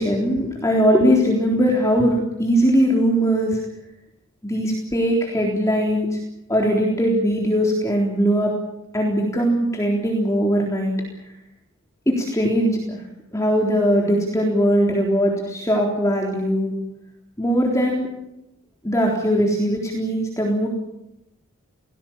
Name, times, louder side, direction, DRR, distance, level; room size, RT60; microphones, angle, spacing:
voice 1, 0.0-3.6 4.4-6.2 6.5-8.5 8.9-10.9 12.1-13.0 13.3-16.7 17.4-18.1 18.8-20.7, equal, 15° left, -2 dB, 3.8 m, -20 dB
29.0 x 19.5 x 7.4 m, 0.86 s
head